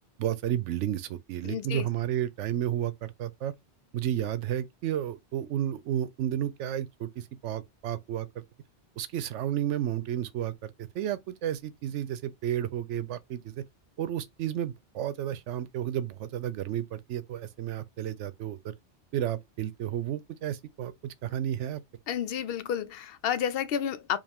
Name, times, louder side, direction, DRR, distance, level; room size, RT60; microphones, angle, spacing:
voice 1, 0.2-3.5 3.9-8.4 9.0-13.6 14.0-18.7 19.1-21.8, right 11 dB, 85° right, 0.9 m, -32 dB
voice 2, 1.4-1.9 22.1-24.2, left 9 dB, 65° left, 0.7 m, -31 dB
5.0 x 2.4 x 3.5 m
omnidirectional pair, 1.2 m